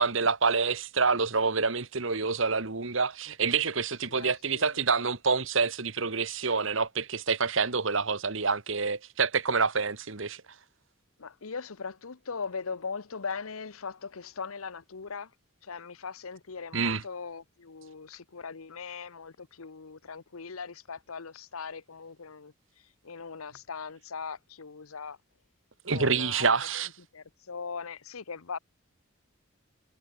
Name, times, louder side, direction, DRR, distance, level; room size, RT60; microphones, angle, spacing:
voice 1, 0.0-10.4 16.7-17.0 25.8-26.9, right 5 dB, 65° right, 1.6 m, -27 dB
voice 2, 4.1-4.7 11.2-15.3 15.6-22.5 23.0-25.2 25.9-26.5 27.1-28.6, left 5 dB, 85° left, 1.0 m, -39 dB
head